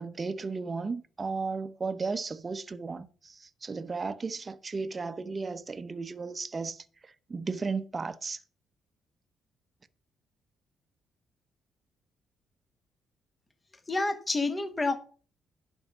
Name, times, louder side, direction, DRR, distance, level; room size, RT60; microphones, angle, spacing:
voice 1, 0.0-8.4, right 4 dB, 30° right, 0.8 m, -35 dB
voice 2, 13.9-15.0, left 3 dB, 25° left, 1.2 m, -28 dB
10.5 x 5.5 x 5.9 m
cardioid pair, 90°, 0 cm